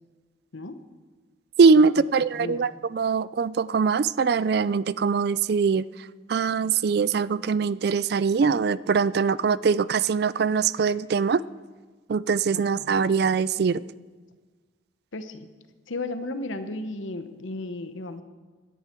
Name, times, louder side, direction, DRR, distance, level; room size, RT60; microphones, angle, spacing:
voice 1, 1.6-5.9 6.3-11.4 12.1-13.8, right 5 dB, 55° right, 19 dB, 0.3 m, -22 dB
voice 2, 2.3-2.7 12.5-13.0 15.1-15.5 15.9-18.2, left 2 dB, 80° left, 10 dB, 1.0 m, -34 dB
17.0 x 10.5 x 4.5 m, 1.4 s
head